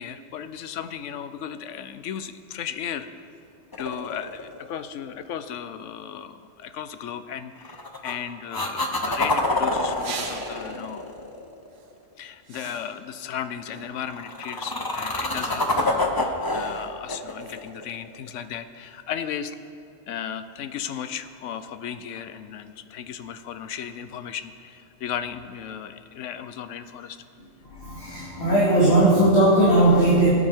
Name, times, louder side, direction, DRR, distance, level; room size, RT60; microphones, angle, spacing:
voice 1, 0.0-3.1 3.8-11.1 12.2-19.6 20.1-27.2, left 9 dB, 75° left, 11 dB, 0.9 m, -35 dB
sound 1, 3.7-4.9 7.6-8.1 8.5-11.8 14.0-18.4 22.2-22.3, left 2 dB, 20° left, 0.8 m, -27 dB
sound 2, 9.9-10.8 11.7-11.9 12.5-13.2 13.7-14.3 15.3-16.3 17.4-17.6, right 6 dB, 75° right, 1.1 m, -40 dB
voice 2, 27.6-30.3, right 1 dB, 55° left, -8 dB, 2.4 m, -18 dB
21.5 x 8.6 x 3.6 m, 2.3 s
omnidirectional pair, 1.3 m